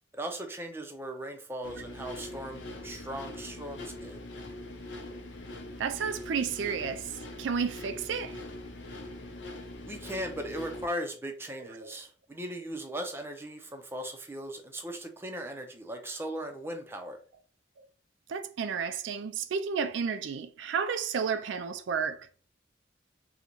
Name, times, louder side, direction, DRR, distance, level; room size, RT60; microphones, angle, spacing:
voice 1, 0.1-4.2 9.9-17.2, right 1 dB, 10° right, 0.4 m, -38 dB
sound 1, 1.6-10.9, left 1 dB, 80° left, 0.6 m, -42 dB
voice 2, 5.8-7.1 7.4-8.4 11.8-11.9 18.3-22.2, right 6 dB, 80° right, 0.4 m, -32 dB
3.8 x 2.1 x 2.9 m
head